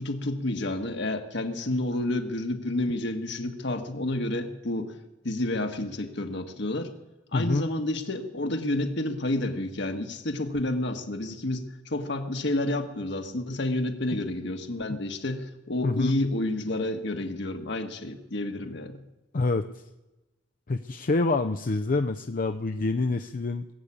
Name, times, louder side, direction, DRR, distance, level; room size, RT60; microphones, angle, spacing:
voice 1, 0.0-4.9 5.2-6.9 7.3-19.0, left 1 dB, 65° left, 5 dB, 1.5 m, -30 dB
voice 2, 7.3-7.7 15.8-16.1 19.3-19.7 20.7-23.7, left 3 dB, 45° left, 7 dB, 0.5 m, -26 dB
20.0 x 8.1 x 8.6 m, 1.0 s
head